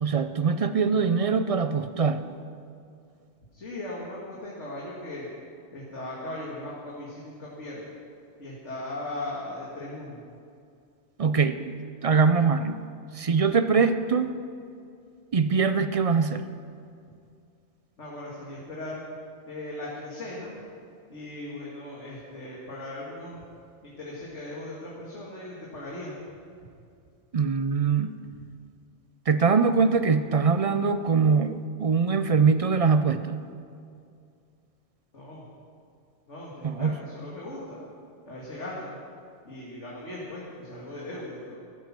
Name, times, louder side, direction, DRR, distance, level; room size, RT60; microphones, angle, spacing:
voice 1, 0.0-2.3 11.2-11.8 12.0-12.8 13.1-14.3 15.3-16.5 27.3-28.1 29.3-33.4 36.6-36.9, right 5 dB, 45° right, 11 dB, 0.4 m, -23 dB
voice 2, 3.5-5.3 5.7-7.9 8.4-10.2 18.0-19.0 19.5-20.5 21.1-23.4 23.8-26.2 26.6-26.7 28.3-28.4 35.1-35.5 36.3-37.8 38.3-39.0 39.4-41.6, left 1 dB, 85° left, -5 dB, 2.5 m, -38 dB
15.0 x 11.5 x 6.1 m, 2.4 s
omnidirectional pair, 1.2 m